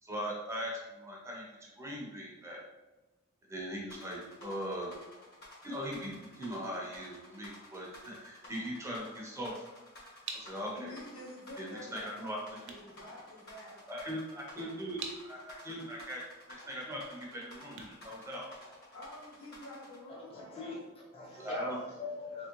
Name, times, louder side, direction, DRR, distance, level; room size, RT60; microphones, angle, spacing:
voice 1, 0.0-2.6 3.5-4.9 5.6-9.7 10.3-11.0 11.6-12.6 13.9-16.2 16.6-18.5 21.4-21.8, equal, 15° right, 0.7 m, -40 dB
sound 1, 3.9-20.0, left 1 dB, 50° left, 1.1 m, -53 dB
sound 2, 10.2-19.0, right 4 dB, 55° right, 0.5 m, -50 dB
voice 2, 10.7-13.8 18.9-20.4, left 1 dB, 80° left, 1.2 m, -48 dB
voice 3, 20.3-22.5, left 3 dB, 25° left, 0.9 m, -42 dB
3.5 x 3.3 x 3.0 m
head